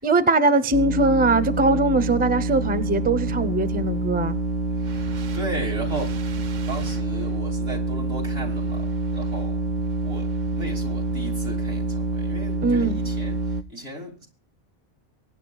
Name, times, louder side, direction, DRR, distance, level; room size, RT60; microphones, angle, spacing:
voice 1, 0.0-4.4 12.6-13.0, right 2 dB, 10° right, 0.6 m, -21 dB
sound 1, 0.7-13.6, right 2 dB, 50° right, 0.7 m, -27 dB
voice 2, 4.7-9.7 10.0-14.3, right 1 dB, 70° right, 3.2 m, -36 dB
23.5 x 9.5 x 2.3 m
omnidirectional pair, 1.1 m